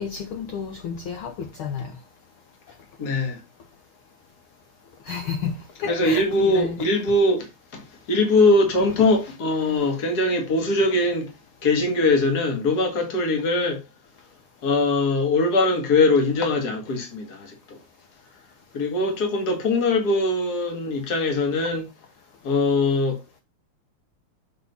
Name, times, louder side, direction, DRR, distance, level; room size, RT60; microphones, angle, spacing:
voice 1, 0.0-1.9 5.0-6.8 9.6-9.9, left 6 dB, 75° left, 1.2 m, -31 dB
voice 2, 3.0-3.4 5.8-11.3 11.6-13.8 14.6-17.8 18.7-21.9 22.4-23.2, left 2 dB, 35° left, 2.2 m, -22 dB
8.0 x 4.1 x 5.5 m
omnidirectional pair, 3.4 m